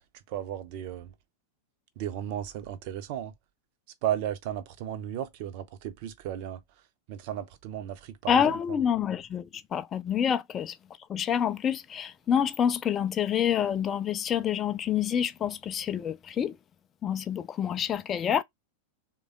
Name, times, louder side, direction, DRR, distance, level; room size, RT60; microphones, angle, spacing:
voice 1, 0.3-1.1 2.0-3.3 4.0-6.6 7.1-8.8, right 11 dB, 45° right, 0.5 m, -34 dB
voice 2, 8.3-10.8 11.1-16.6 17.0-18.4, left 8 dB, 25° left, 0.3 m, -27 dB
3.3 x 2.2 x 3.7 m
figure-of-eight pair, 90°, 0 cm